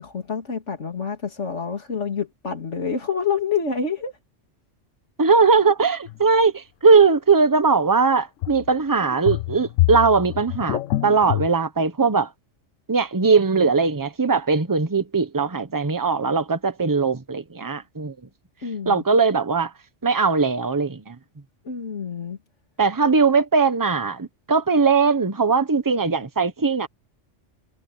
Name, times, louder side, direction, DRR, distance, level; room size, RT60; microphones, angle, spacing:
voice 1, 0.0-4.1 18.6-19.0 21.6-22.4, left 6 dB, 70° left, 2.9 m, -27 dB
voice 2, 5.2-12.3 12.9-18.1 18.9-19.7 20.0-21.2 22.8-26.9, right 4 dB, 15° right, 1.0 m, -20 dB
sound 1, 6.1-6.2 8.4-8.7 9.0-11.5, left 17 dB, 85° left, 0.9 m, -25 dB
omnidirectional pair, 1.3 m